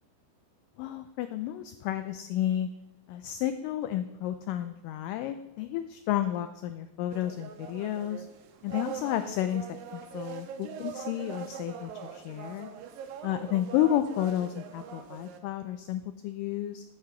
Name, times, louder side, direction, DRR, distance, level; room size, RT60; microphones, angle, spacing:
voice 1, 0.8-2.7 3.1-8.3 8.6-12.7 13.2-16.8, left 12 dB, 85° left, 9 dB, 1.9 m, -31 dB
sound 1, 7.1-15.4, right 8 dB, 75° right, 2.4 m, -42 dB
14.0 x 6.7 x 5.7 m, 1.0 s
omnidirectional pair, 4.4 m